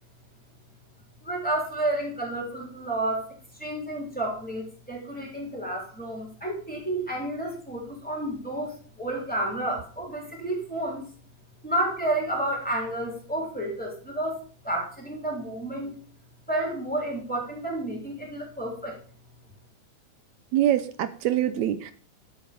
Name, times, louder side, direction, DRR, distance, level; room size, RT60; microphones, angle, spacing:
voice 1, 1.2-11.0 11.6-16.0 16.5-19.0, right 1 dB, 5° left, 0 dB, 3.4 m, -31 dB
voice 2, 20.5-21.9, right 12 dB, 80° right, 12 dB, 2.0 m, -24 dB
12.0 x 8.7 x 5.3 m, 0.42 s
omnidirectional pair, 3.4 m